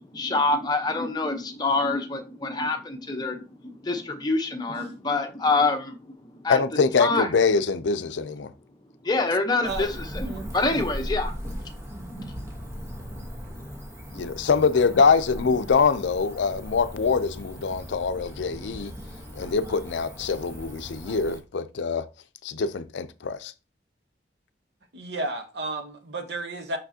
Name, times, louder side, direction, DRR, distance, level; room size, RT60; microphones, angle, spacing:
voice 1, 0.0-6.0 6.4-6.6 7.0-7.3 9.0-11.3, left 3 dB, 25° left, 0.8 m, -26 dB
voice 2, 6.5-8.5 14.1-18.9 19.3-22.1 22.4-23.5, left 5 dB, 80° left, 0.5 m, -24 dB
Cricket / Motor vehicle (road), 9.7-21.4, equal, 15° right, 1.0 m, -38 dB
voice 3, 24.9-26.8, right 2 dB, 65° right, 1.0 m, -32 dB
5.8 x 5.8 x 2.8 m
head